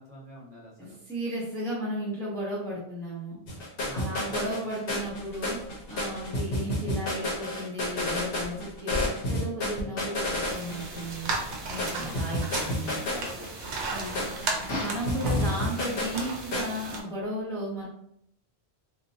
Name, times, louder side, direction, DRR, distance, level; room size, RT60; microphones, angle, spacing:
voice 1, 0.0-0.9 3.8-4.5 9.7-10.0 11.9-12.2 13.0-14.3, left 1 dB, 40° right, -5 dB, 1.2 m, -47 dB
voice 2, 0.8-3.4 3.9-5.6 5.9-9.0 9.3-11.3 11.7-13.0 13.9-14.3 14.8-17.9, equal, 5° left, -8 dB, 0.9 m, -34 dB
sound 1, 3.5-16.6, left 1 dB, 65° left, 0.9 m, -31 dB
sound 2, 10.5-17.0, right 3 dB, 85° right, 0.9 m, -35 dB
2.8 x 2.5 x 2.6 m, 0.70 s
omnidirectional pair, 1.1 m